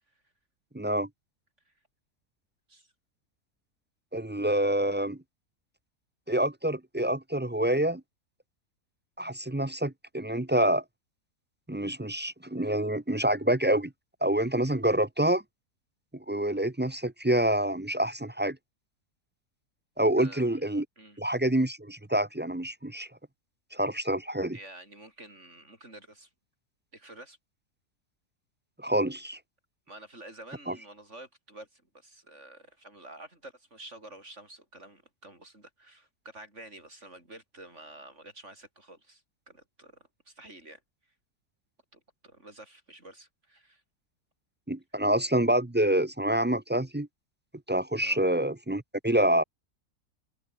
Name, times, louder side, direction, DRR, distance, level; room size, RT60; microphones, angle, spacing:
voice 1, 0.7-1.1 4.1-5.2 6.3-8.0 9.2-10.8 11.7-13.9 14.2-15.4 16.3-18.6 20.0-20.8 21.2-23.1 23.7-24.6 28.8-29.4 30.7-30.8 44.7-47.1 47.7-49.4, right 1 dB, 10° right, 0.5 m, -27 dB
voice 2, 20.2-20.5 21.0-21.2 24.5-26.3 26.9-27.4 29.9-40.8 41.9-43.8 48.0-48.2, right 1 dB, 45° right, 7.1 m, -49 dB
omnidirectional pair, 1.7 m